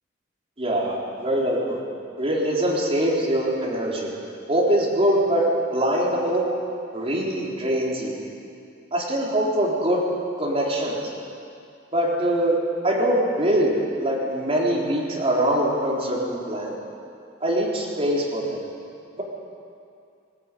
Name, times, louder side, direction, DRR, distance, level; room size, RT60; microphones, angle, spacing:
voice 1, 0.6-1.8 2.2-4.1 4.5-5.4 5.7-6.5 6.9-8.2 8.9-10.0 10.4-11.0 11.9-12.6 12.8-16.7 17.4-18.6, right 1 dB, 30° right, -4 dB, 4.2 m, -23 dB
18.5 x 17.0 x 9.3 m, 2.5 s
head